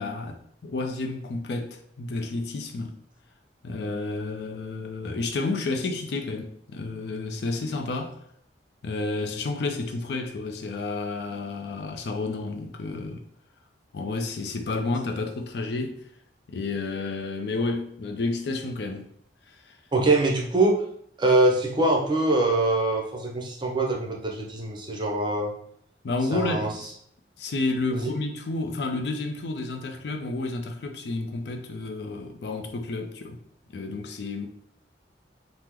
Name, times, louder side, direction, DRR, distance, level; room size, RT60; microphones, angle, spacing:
voice 1, 0.0-2.9 3.6-8.2 8.8-13.2 13.9-16.0 16.5-19.1 19.5-19.8 26.0-26.9 27.4-33.4 33.7-34.5, left 3 dB, 65° left, 0.4 m, -31 dB
voice 2, 19.9-20.8 21.2-25.5 26.3-26.7 27.9-28.1, right 2 dB, 25° right, 0.6 m, -23 dB
3.0 x 2.0 x 3.5 m
head